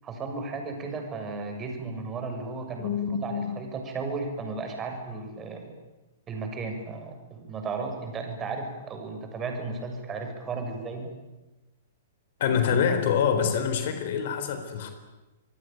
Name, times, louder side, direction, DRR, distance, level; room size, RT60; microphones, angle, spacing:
voice 1, 0.0-2.9 3.2-5.7 6.3-11.1, right 4 dB, 20° right, 4 dB, 6.9 m, -34 dB
voice 2, 2.8-3.5 12.4-14.9, left 7 dB, 50° left, 8 dB, 3.9 m, -26 dB
26.5 x 23.0 x 9.2 m, 1.1 s
figure-of-eight pair, 110°, 0 cm